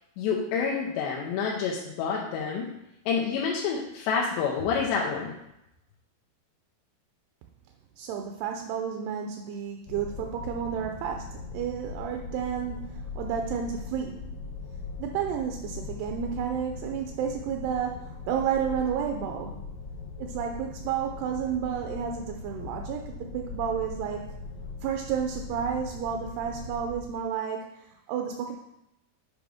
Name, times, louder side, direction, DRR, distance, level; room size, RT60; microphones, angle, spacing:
voice 1, 0.2-2.7 3.1-5.3, left 6 dB, 90° left, -3 dB, 2.9 m, -28 dB
voice 2, 8.0-14.3 15.0-19.6 20.2-24.3 24.8-28.5, right 8 dB, 80° right, 3 dB, 2.5 m, -31 dB
sound 1, 9.9-27.1, left 4 dB, 70° left, 2.4 m, -40 dB
8.9 x 5.0 x 3.5 m, 0.86 s
omnidirectional pair, 4.9 m